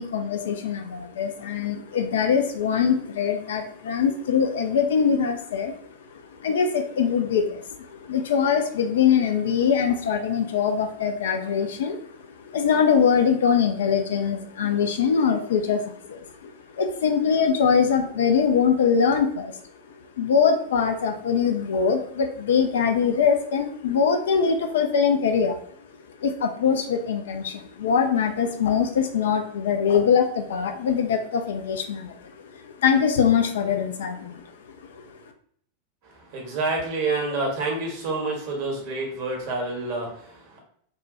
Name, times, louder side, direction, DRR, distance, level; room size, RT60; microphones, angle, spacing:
voice 1, 0.0-5.8 6.4-19.6 19.9-25.6 26.2-34.4 34.9-35.0, left 6 dB, 60° left, 5 dB, 0.4 m, -23 dB
voice 2, 36.3-40.6, right 3 dB, 45° right, 0 dB, 1.0 m, -28 dB
3.4 x 2.2 x 2.7 m, 0.64 s
figure-of-eight pair, 90°, 0 cm